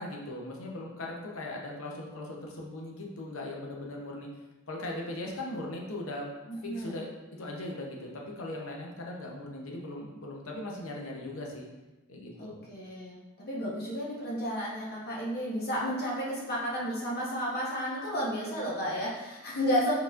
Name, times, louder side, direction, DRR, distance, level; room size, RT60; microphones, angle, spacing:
voice 1, 0.0-4.3 4.7-6.3 6.6-7.1 7.4-11.7 12.1-12.6, left 1 dB, 70° left, -1 dB, 0.7 m, -39 dB
voice 2, 6.5-7.0 12.4-19.9, equal, 45° left, -5 dB, 1.0 m, -32 dB
4.4 x 4.0 x 2.4 m, 1.1 s
head